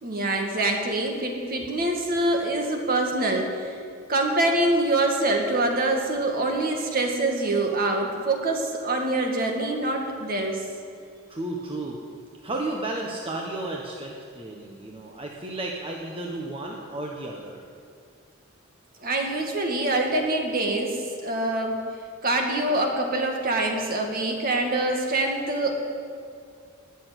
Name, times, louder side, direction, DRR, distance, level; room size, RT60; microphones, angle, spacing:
voice 1, 0.0-3.8 4.1-10.6 19.0-21.8 22.2-25.7, right 2 dB, 50° right, 2 dB, 2.1 m, -25 dB
voice 2, 11.3-12.0 12.4-17.6, right 2 dB, 30° right, -1 dB, 1.2 m, -33 dB
20.0 x 7.0 x 8.2 m, 2.4 s
head